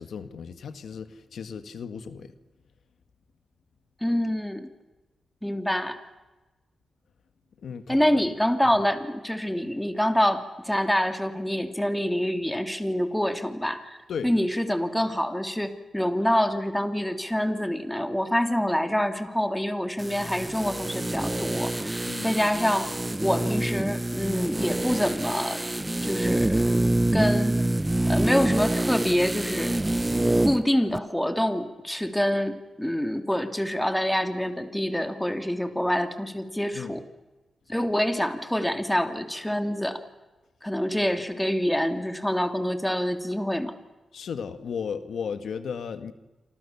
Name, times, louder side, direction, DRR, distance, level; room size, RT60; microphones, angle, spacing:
voice 1, 0.0-2.3 7.6-8.2 8.7-8.8 14.1-14.3 22.1-22.3 36.7-37.0 44.1-46.1, left 6 dB, 80° left, 1.7 m, -35 dB
voice 2, 4.0-4.7 5.4-6.0 7.9-14.0 14.2-25.6 26.0-27.6 28.1-29.9 30.2-37.1 37.7-40.0 40.6-43.7, equal, 5° left, 3.1 m, -26 dB
sound 1, 20.0-30.7 30.9-31.0, right 1 dB, 15° right, 0.9 m, -26 dB
28.0 x 26.5 x 7.2 m
cardioid pair, 65°, 0 cm